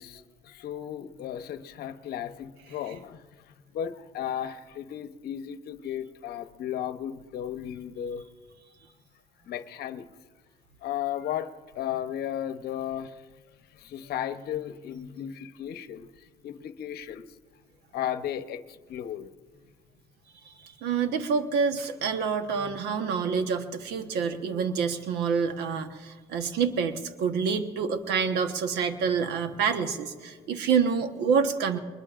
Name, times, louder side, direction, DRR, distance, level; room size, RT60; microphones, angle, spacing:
voice 1, 0.0-3.2 3.7-8.3 9.5-10.1 10.8-13.2 13.8-16.1 16.4-17.2 17.9-19.3 30.3-30.4, left 10 dB, 70° left, 10 dB, 0.9 m, -35 dB
voice 2, 20.6-31.8, right 6 dB, 80° right, 7 dB, 1.2 m, -27 dB
22.5 x 21.0 x 2.5 m, 1.4 s
cardioid pair, 110°, 17 cm